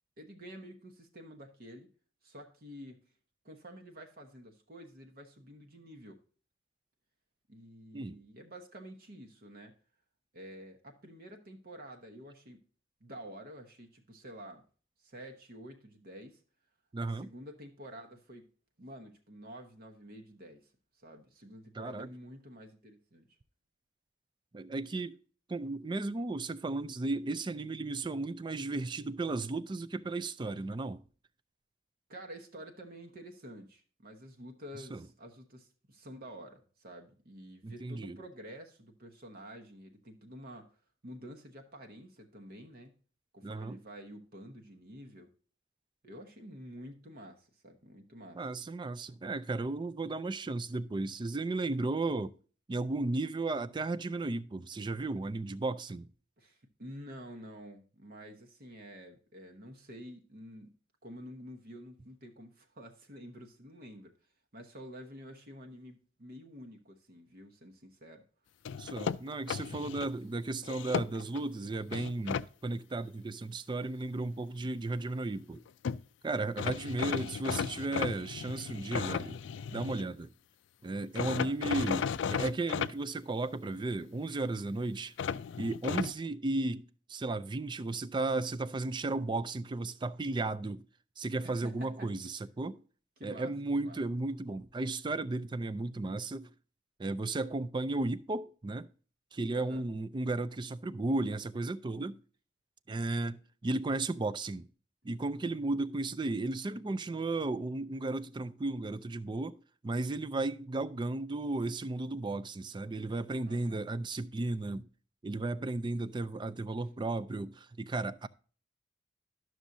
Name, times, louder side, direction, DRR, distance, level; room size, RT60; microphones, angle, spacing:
voice 1, 0.2-1.9 2.2-3.0 3.4-6.2 7.5-9.7 10.3-12.6 13.0-14.6 15.0-16.4 17.0-18.4 18.8-20.7 21.0-23.3 32.1-40.7 41.0-43.0 43.3-45.3 46.0-48.4 56.4-60.7 61.0-64.1 64.5-68.2 81.3-81.6 91.4-92.1 93.2-94.0 99.5-99.8 113.4-113.9, equal, 50° right, 1.1 m, -49 dB
voice 2, 16.9-17.3 21.7-22.1 24.5-25.2 25.5-31.0 34.9-35.0 37.6-38.2 43.4-43.8 48.3-52.3 52.7-56.1 68.8-75.6 76.2-79.4 79.7-80.3 80.8-85.1 85.6-90.8 91.2-92.8 93.2-96.5 97.0-98.9 99.3-102.2 102.9-104.7 105.0-114.9 115.2-118.3, right 2 dB, 25° right, 0.4 m, -34 dB
sound 1, 68.7-70.1 70.6-71.4 71.9-72.5 75.6-75.7 75.8-76.0 76.6-80.1 81.2-82.9 85.2-86.1, left 7 dB, 65° left, 0.4 m, -35 dB
11.5 x 6.2 x 2.7 m
head